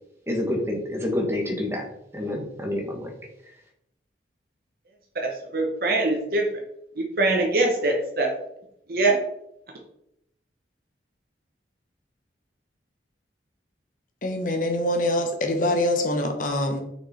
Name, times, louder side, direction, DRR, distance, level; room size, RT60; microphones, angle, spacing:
voice 1, 0.3-1.9 2.1-3.1, left 1 dB, 15° right, 1 dB, 1.4 m, -28 dB
voice 2, 5.1-6.5 7.0-8.3 8.9-9.1, right 2 dB, 55° right, 1 dB, 1.0 m, -23 dB
voice 3, 14.2-16.8, left 1 dB, 45° left, 4 dB, 1.2 m, -24 dB
6.0 x 5.3 x 4.3 m, 0.78 s
head